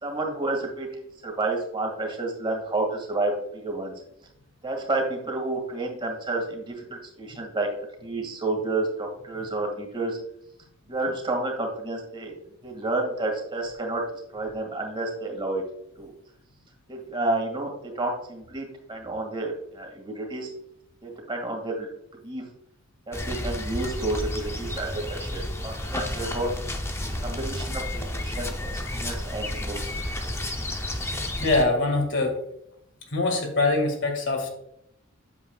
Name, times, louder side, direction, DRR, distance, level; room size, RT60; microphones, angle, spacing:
voice 1, 0.0-3.9 4.6-10.2 10.9-12.3 12.6-14.0 14.3-15.6 16.0-16.1 16.9-20.5 21.0-21.9 22.2-22.4 23.1-26.5 27.0-29.8 30.2-30.3, right 2 dB, 25° right, 0 dB, 2.0 m, -30 dB
sound 1, 23.1-31.6, left 1 dB, 15° left, 0.6 m, -31 dB
voice 2, 31.4-32.4 33.1-34.5, left 2 dB, 60° left, 3 dB, 2.0 m, -23 dB
8.3 x 7.5 x 2.3 m, 0.77 s
head